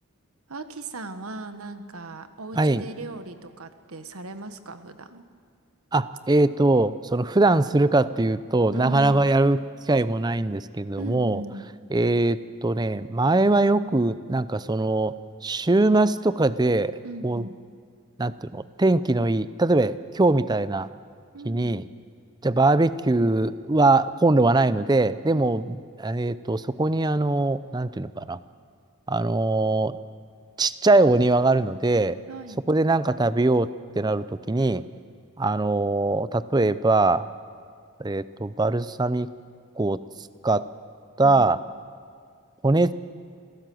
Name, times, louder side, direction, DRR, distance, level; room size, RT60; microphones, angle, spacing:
voice 1, 0.5-5.2 8.7-9.2 11.0-11.7 17.0-17.6 21.3-21.8 25.3-25.5 32.3-32.6 41.2-41.6, right 2 dB, 75° right, 9 dB, 1.3 m, -38 dB
voice 2, 5.9-9.6 9.9-11.4 11.9-15.1 15.4-17.0 17.2-17.4 18.2-20.9 21.5-21.8 22.4-25.6 26.0-28.4 29.1-30.0 30.6-32.2 32.7-33.7 34.0-34.8 35.4-37.3 38.0-39.3 39.8-40.0 40.4-40.7 41.2-41.6 42.6-42.9, right 2 dB, 20° right, 15 dB, 0.5 m, -22 dB
27.5 x 17.0 x 7.8 m, 2.1 s
head